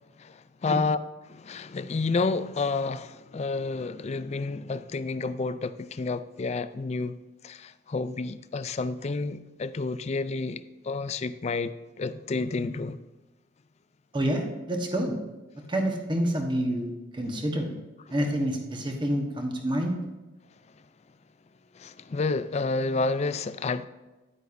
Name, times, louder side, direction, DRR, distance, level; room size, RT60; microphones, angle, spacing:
voice 1, 0.2-1.0 1.3-7.2 7.4-13.0 21.8-23.9, left 3 dB, 35° left, 0.4 m, -30 dB
voice 2, 14.1-15.1 15.7-17.7 18.1-20.0, right 1 dB, 25° right, 1.2 m, -28 dB
10.0 x 9.1 x 2.6 m
head